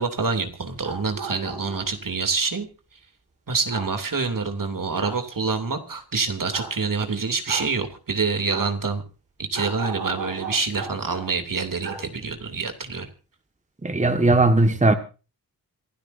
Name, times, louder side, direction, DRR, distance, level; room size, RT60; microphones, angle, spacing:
voice 1, 0.0-2.7 3.5-9.0 9.4-13.1, right 4 dB, 60° right, 2.9 m, -26 dB
sound 1, 0.6-2.0 3.7-3.9 5.0-5.2 6.5-6.7 7.5-7.7 8.5-8.7 9.5-11.2 11.8-12.0 12.3-12.4, right 4 dB, 85° right, 7.8 m, -35 dB
voice 2, 13.8-14.9, right 2 dB, 20° right, 1.7 m, -18 dB
27.0 x 12.5 x 2.7 m
cardioid pair, 55°, 37 cm